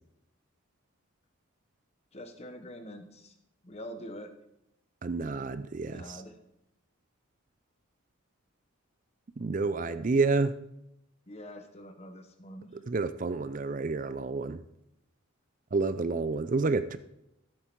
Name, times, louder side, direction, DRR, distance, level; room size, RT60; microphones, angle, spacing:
voice 1, 2.1-3.4 3.6-4.3 5.9-6.4 11.3-12.8, equal, 30° left, 8 dB, 1.1 m, -45 dB
voice 2, 5.0-6.2 9.4-10.6 12.9-14.6 15.7-17.0, right 3 dB, 40° right, 13 dB, 0.4 m, -29 dB
14.0 x 8.1 x 4.6 m, 0.82 s
head